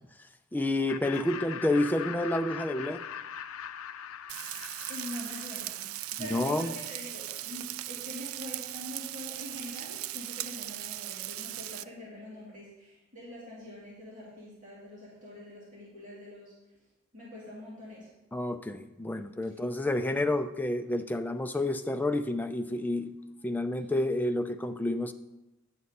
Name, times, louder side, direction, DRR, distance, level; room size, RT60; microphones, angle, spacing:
voice 1, 0.5-3.0 6.2-6.7 18.3-23.1 23.4-25.1, left 1 dB, 10° left, 8 dB, 0.4 m, -29 dB
Laughter, 0.9-6.2, left 8 dB, 90° left, 0.4 m, -41 dB
Frying (food), 4.3-11.8, right 15 dB, 85° right, 0.4 m, -38 dB
voice 2, 4.9-16.5 17.1-18.1 19.5-19.6 23.8-23.9, left 1 dB, 40° right, -8 dB, 2.7 m, -44 dB
9.5 x 7.5 x 4.2 m, 1.0 s
head